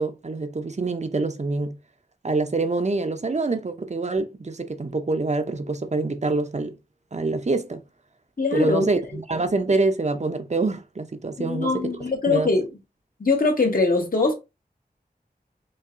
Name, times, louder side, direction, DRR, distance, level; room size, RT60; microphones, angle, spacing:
voice 1, 0.0-1.8 2.2-6.8 7.1-7.8 8.5-11.9 12.3-12.5, right 3 dB, 45° right, 0.6 m, -25 dB
voice 2, 8.4-8.9 11.4-12.7 13.2-14.3, left 3 dB, 60° left, 1.2 m, -22 dB
5.4 x 2.8 x 2.5 m
wide cardioid pair, 70°, 17 cm